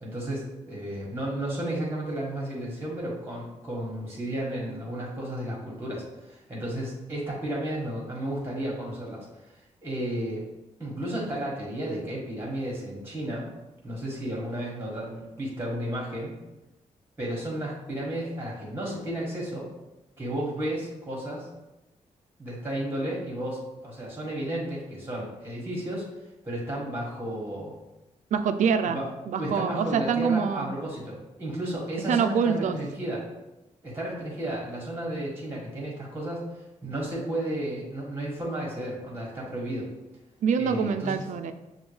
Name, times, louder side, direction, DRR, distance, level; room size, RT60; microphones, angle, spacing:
voice 1, 0.0-10.4 10.8-13.5 13.8-16.3 17.2-19.7 20.2-21.5 22.4-26.1 26.4-27.7 28.8-29.1 29.4-33.3 33.8-36.4 36.8-39.9 40.5-41.3, right 1 dB, 20° right, -4 dB, 1.4 m, -33 dB
voice 2, 28.3-30.7 32.1-32.8 40.4-41.5, right 6 dB, 75° right, 9 dB, 0.4 m, -25 dB
6.1 x 2.3 x 3.2 m, 0.99 s
cardioid pair, 85°, 13 cm